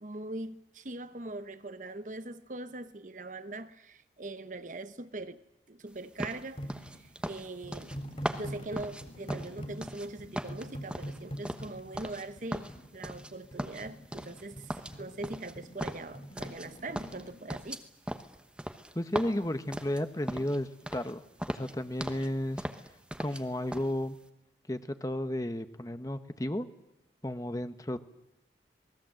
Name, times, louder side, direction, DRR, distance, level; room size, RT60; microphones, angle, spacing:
voice 1, 0.0-5.4 5.7-7.9 8.3-17.8, right 2 dB, 45° right, 1.0 m, -42 dB
sound 1, 6.2-10.1 10.3-12.3 12.5-13.3 13.6-14.4 14.7-16.7 17.0-20.6 20.9-21.1 21.4-22.3 22.6-23.4 23.7-23.9, equal, 5° right, 1.1 m, -38 dB
sound 2, 6.6-17.4, equal, 35° left, 3.5 m, -44 dB
voice 2, 18.9-21.2 21.5-22.6 23.2-24.2 24.7-26.7 27.2-28.0, left 1 dB, 20° left, 1.0 m, -33 dB
27.0 x 20.0 x 7.7 m
head